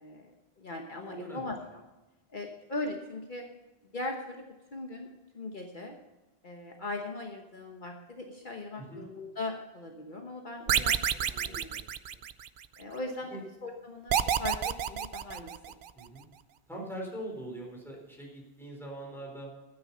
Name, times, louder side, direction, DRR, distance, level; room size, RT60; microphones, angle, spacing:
voice 1, 0.0-1.6 2.3-3.5 3.9-4.4 4.7-5.1 5.3-6.0 6.4-10.9 11.4-11.7 12.8-15.5, left 2 dB, 55° left, 2 dB, 1.3 m, -39 dB
voice 2, 1.1-1.6 8.8-9.0 10.7-11.8 12.1-12.2 13.3-13.4 15.9-16.3 16.7-19.5, right 1 dB, ahead, -1 dB, 4.1 m, -43 dB
sound 1, 10.7-12.6 14.1-15.9, right 9 dB, 60° right, 0.7 m, -29 dB
13.0 x 9.4 x 5.5 m, 1.1 s
omnidirectional pair, 1.0 m